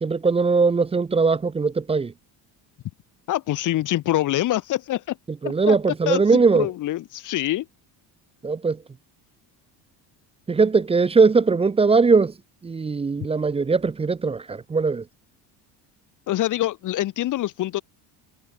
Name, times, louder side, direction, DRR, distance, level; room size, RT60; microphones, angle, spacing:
voice 1, 0.0-2.1 5.4-6.7 8.4-8.8 10.5-12.3 12.6-15.0, right 4 dB, 15° right, 0.4 m, -20 dB
voice 2, 3.3-5.2 5.7-5.8 6.1-6.2 6.5-7.7 16.3-17.8, left 14 dB, 40° left, 0.6 m, -25 dB
supercardioid pair, 70°, 50 cm